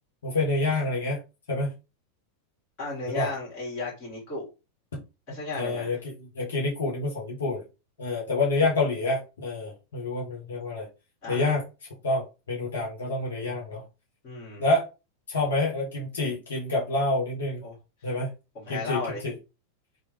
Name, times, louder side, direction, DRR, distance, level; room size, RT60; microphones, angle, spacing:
voice 1, 0.2-1.2 1.5-1.7 3.1-3.3 4.9-5.0 5.5-7.6 8.0-10.9 11.3-11.6 12.0-13.8 14.6-14.9 15.3-17.6 18.0-18.3 18.7-19.3, left 2 dB, 65° left, 1.0 m, -27 dB
voice 2, 2.8-4.5 5.3-6.0 11.2-11.5 14.2-14.7 17.6-17.7 18.5-19.2, left 3 dB, 35° left, 1.7 m, -35 dB
3.0 x 2.0 x 3.2 m
figure-of-eight pair, 90°, 0 cm